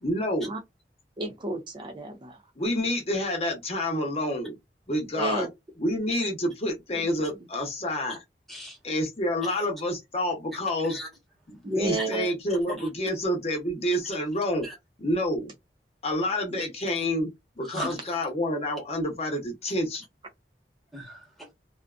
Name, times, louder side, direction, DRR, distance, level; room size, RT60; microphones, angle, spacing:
voice 1, 0.0-0.5 2.6-4.6 4.9-5.5 5.8-8.2 8.8-11.0 11.5-14.6 15.0-15.5 16.0-17.3 17.6-20.0, left 1 dB, 35° left, 0.8 m, -28 dB
voice 2, 1.2-2.4 5.1-5.5 11.6-12.3 16.5-16.6, right 2 dB, 25° right, 0.4 m, -31 dB
voice 3, 8.5-8.8 9.4-9.6 10.9-11.1 11.7-12.3 12.7-12.9 14.6-14.7 16.9-17.0 17.6-18.2 20.9-21.5, equal, ahead, 1.0 m, -39 dB
2.5 x 2.4 x 2.3 m
head